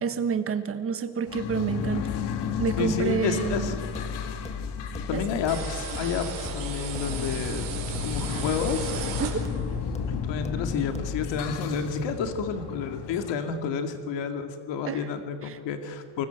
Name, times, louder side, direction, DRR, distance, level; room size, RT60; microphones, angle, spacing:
voice 1, 0.0-2.1 2.6-3.7 5.1-5.2 9.2-9.4 14.8-15.1 15.4-15.6, right 6 dB, 30° right, 9 dB, 1.4 m, -28 dB
sound 1, 1.3-13.3, left 7 dB, 65° left, 2.1 m, -34 dB
voice 2, 2.8-3.8 5.1-7.7 8.0-8.9 10.1-16.3, left 6 dB, 85° left, 6 dB, 2.3 m, -30 dB
sound 2, 3.5-11.5, left 4 dB, 15° left, 1.2 m, -36 dB
sound 3, 5.5-9.8, right 6 dB, 50° right, 4.7 m, -36 dB
25.0 x 20.5 x 8.1 m, 2.1 s
cardioid pair, 180°, 43 cm